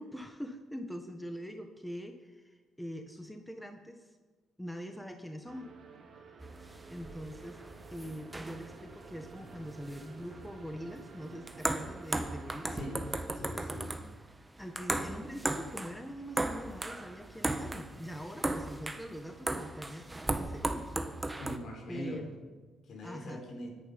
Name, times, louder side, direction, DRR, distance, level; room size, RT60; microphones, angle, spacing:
voice 1, 0.0-4.1 4.6-5.7 6.3-6.4 6.9-7.6 7.9-12.8 14.6-20.1 20.3-21.0 21.9-22.3 23.0-23.4, equal, 5° left, 5 dB, 1.6 m, -43 dB
sound 1, 5.5-13.2, right 5 dB, 55° right, 2.5 m, -53 dB
sound 2, 6.4-21.6, right 2 dB, 15° right, 1.4 m, -37 dB
voice 2, 12.7-13.1 13.3-13.9 21.4-22.3 22.9-23.7, equal, 60° left, 2 dB, 4.8 m, -41 dB
24.5 x 10.5 x 5.4 m, 1.3 s
cardioid pair, 90°, 0 cm